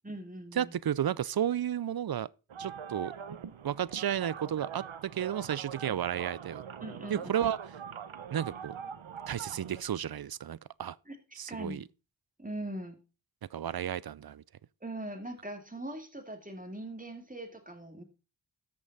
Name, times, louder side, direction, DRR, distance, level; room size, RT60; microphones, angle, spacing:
voice 1, 0.0-0.7 6.8-7.2 11.1-11.2 11.5-11.8 12.4-13.0 14.8-18.0, right 1 dB, 15° right, 2.2 m, -41 dB
voice 2, 0.5-2.3 2.6-3.1 3.6-6.6 7.1-7.6 8.3-8.8 9.3-11.0 11.3-11.8 13.5-14.4, right 10 dB, 55° right, 0.5 m, -32 dB
sound 1, 2.5-9.8, right 7 dB, 85° right, 0.8 m, -43 dB
14.0 x 5.5 x 4.0 m
wide cardioid pair, 45°, 46 cm